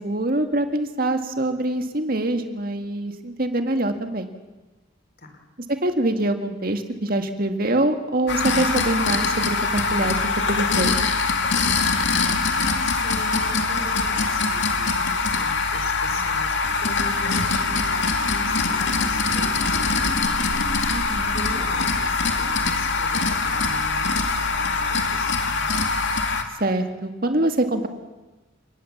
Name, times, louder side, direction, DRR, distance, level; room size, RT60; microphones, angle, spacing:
voice 1, 0.0-4.3 5.7-10.2 10.5-10.9 20.9-21.4 26.6-27.9, right 1 dB, 45° right, 7 dB, 2.0 m, -24 dB
sound 1, 8.3-26.4, left 4 dB, 65° left, 2.3 m, -23 dB
voice 2, 12.4-20.3 20.9-25.8, left 2 dB, 50° left, 5 dB, 4.1 m, -39 dB
30.0 x 18.5 x 7.3 m, 1.2 s
head